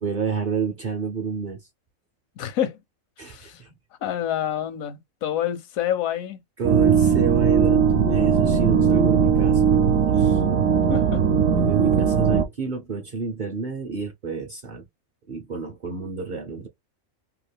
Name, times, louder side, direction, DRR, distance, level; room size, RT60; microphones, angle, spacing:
voice 1, 0.0-1.6 3.2-3.7 6.6-9.6 10.1-10.4 11.5-14.9 15.3-16.7, right 5 dB, 50° right, 0.6 m, -29 dB
voice 2, 2.4-2.8 3.2-3.6 4.0-6.4 10.9-11.2, left 10 dB, 80° left, 1.0 m, -27 dB
sound 1, 6.6-12.5, right 7 dB, 75° right, 0.9 m, -19 dB
2.8 x 2.4 x 3.3 m
omnidirectional pair, 1.4 m